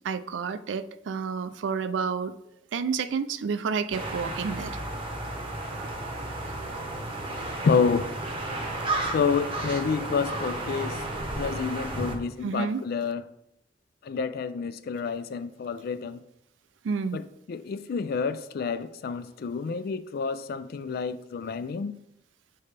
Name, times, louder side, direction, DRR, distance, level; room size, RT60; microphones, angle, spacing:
voice 1, 0.0-2.3 2.7-4.8 6.4-6.7 8.6-8.8 12.4-12.8 16.8-17.2, right 5 dB, 80° right, 0.4 m, -30 dB
sound 1, 3.9-12.2, right 2 dB, 30° right, 0.8 m, -33 dB
voice 2, 7.6-8.1 9.1-11.0 11.4-13.2 14.0-16.2 17.1-22.0, left 5 dB, 55° left, 0.4 m, -29 dB
6.7 x 4.2 x 3.3 m
head